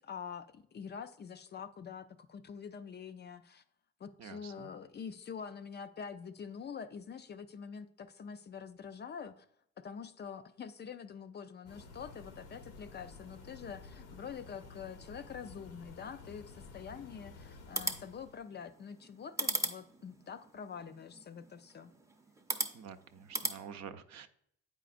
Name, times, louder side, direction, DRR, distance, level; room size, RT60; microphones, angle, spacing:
voice 1, 0.0-3.6 4.0-9.5 9.8-21.9, left 6 dB, 35° left, 11 dB, 0.4 m, -46 dB
voice 2, 4.2-4.7 22.7-24.3, right 7 dB, 65° right, 10 dB, 0.5 m, -48 dB
sound 1, 11.7-18.4, left 4 dB, 90° left, 1.0 m, -52 dB
sound 2, 17.6-23.6, right 2 dB, 10° right, 0.6 m, -40 dB
8.3 x 5.0 x 2.5 m, 0.69 s
cardioid pair, 90°, 30 cm